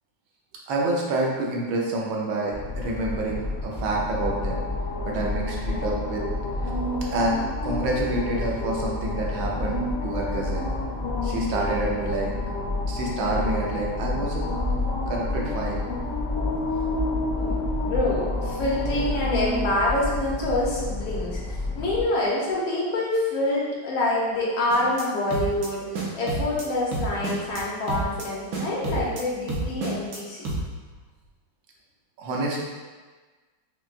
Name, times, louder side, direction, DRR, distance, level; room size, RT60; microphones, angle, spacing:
voice 1, 0.7-4.6 5.0-6.2 7.1-10.7 11.2-12.3 12.9-14.4 15.1-15.8 32.2-32.6, right 2 dB, 85° right, -2 dB, 1.5 m, -28 dB
sound 1, 2.5-22.0, left 2 dB, 60° left, 0.8 m, -29 dB
voice 2, 17.4-30.5, left 1 dB, 85° left, -5 dB, 1.7 m, -26 dB
sound 2, 24.7-25.0 25.3-25.7 25.9-26.6 26.9-27.6 27.9-28.3 28.5-29.2 29.5-30.2 30.5-30.6, right 2 dB, 65° right, 1.1 m, -29 dB
5.5 x 2.2 x 2.4 m, 1.4 s
omnidirectional pair, 2.1 m